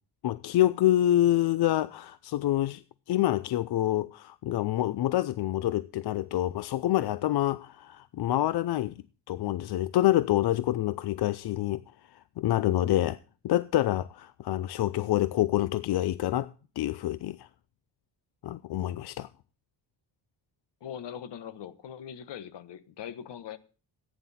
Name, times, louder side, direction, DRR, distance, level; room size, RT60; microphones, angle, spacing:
voice 1, 0.2-2.8 3.1-11.8 12.1-13.2 13.4-17.5 18.4-19.3, left 14 dB, 70° left, 0.6 m, -27 dB
voice 2, 20.8-23.6, left 9 dB, 85° left, 1.2 m, -41 dB
15.0 x 9.5 x 4.2 m
wide cardioid pair, 140°, 41 cm